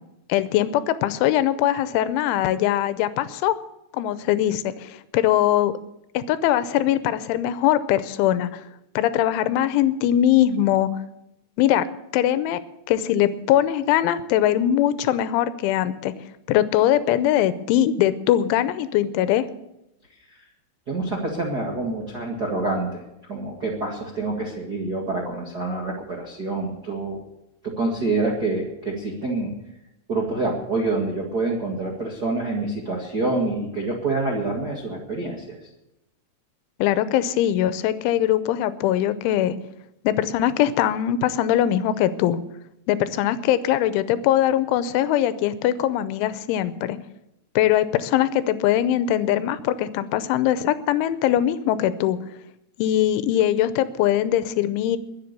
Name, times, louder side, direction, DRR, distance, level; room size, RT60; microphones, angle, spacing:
voice 1, 0.3-3.5 4.0-5.7 6.1-8.6 9.0-10.9 11.6-11.9 12.1-12.6 12.9-16.1 16.5-19.5 36.8-39.6 40.0-42.4 42.9-47.0 47.6-52.2 52.8-55.0, left 12 dB, 90° left, 13 dB, 3.1 m, -21 dB
voice 2, 20.9-23.0 23.3-27.2 27.6-29.5 30.1-35.6, right 2 dB, 60° right, -2 dB, 1.0 m, -27 dB
21.5 x 7.5 x 6.8 m, 0.88 s
omnidirectional pair, 5.4 m